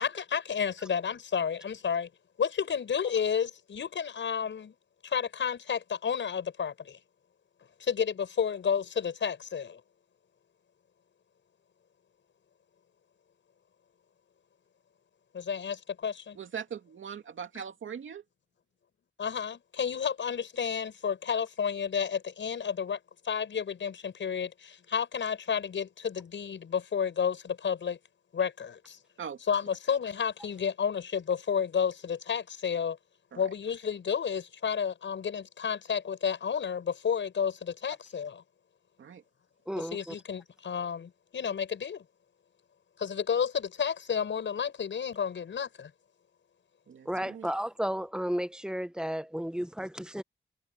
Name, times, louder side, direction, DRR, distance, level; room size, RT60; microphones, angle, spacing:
voice 1, 0.0-2.1 2.4-4.7 5.0-7.0 7.8-9.8 15.3-16.4 19.2-23.0 23.2-28.0 28.3-29.0 29.5-33.0 33.3-38.4 39.7-42.0 43.0-45.9, left 7 dB, 70° left, 6.6 m, -31 dB
voice 2, 16.4-18.2 29.2-29.4 33.3-33.4 39.0-39.2 46.9-47.5, right 7 dB, 85° right, 2.6 m, -40 dB
voice 3, 39.7-40.1 47.1-50.2, equal, 5° right, 0.7 m, -33 dB
wide cardioid pair, 160°, 20 cm